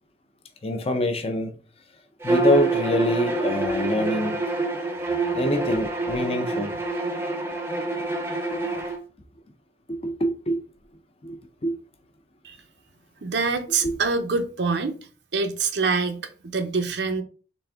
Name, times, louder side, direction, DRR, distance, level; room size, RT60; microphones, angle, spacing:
voice 1, 0.6-1.5 2.2-4.4 5.3-6.7 8.5-8.6 9.9-10.6 11.2-11.4 11.6-11.7 13.8-13.9, left 1 dB, 35° left, 0.6 m, -25 dB
Bowed string instrument, 2.2-9.0, right 3 dB, 15° right, 0.6 m, -26 dB
voice 2, 13.2-15.0 15.3-17.2, right 4 dB, 80° right, 0.7 m, -25 dB
4.0 x 3.3 x 3.5 m
head